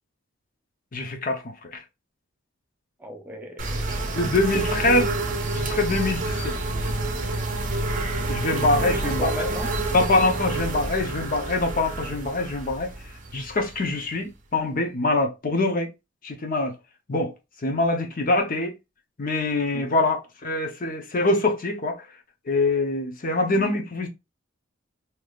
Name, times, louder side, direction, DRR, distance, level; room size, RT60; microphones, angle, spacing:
voice 1, 0.9-1.8 4.1-5.1 5.5-6.5 8.3-9.5 9.9-12.9 13.3-15.9 16.2-16.7 17.1-17.3 17.6-18.7 19.2-22.0 22.5-24.1, left 2 dB, 45° left, 0.7 m, -24 dB
voice 2, 3.0-4.2 8.8-9.7 19.7-20.0, equal, 10° right, 0.6 m, -37 dB
sound 1, 3.6-14.2, right 2 dB, 40° right, 0.8 m, -28 dB
3.4 x 2.9 x 2.3 m
head